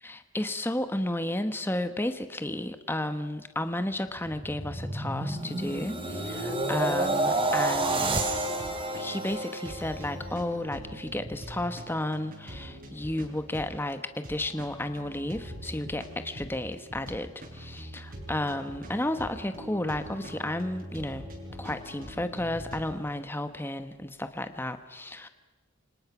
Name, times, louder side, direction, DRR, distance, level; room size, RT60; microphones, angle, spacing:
voice 1, 0.0-8.1 9.0-21.3 21.6-25.3, left 1 dB, 10° left, 9 dB, 1.1 m, -32 dB
sound 1, 4.2-10.4 10.9-11.1, right 2 dB, 25° right, 3.7 m, -30 dB
sound 2, 8.1-22.9, equal, 45° right, 6.8 m, -43 dB
29.5 x 26.0 x 6.1 m, 1.2 s
head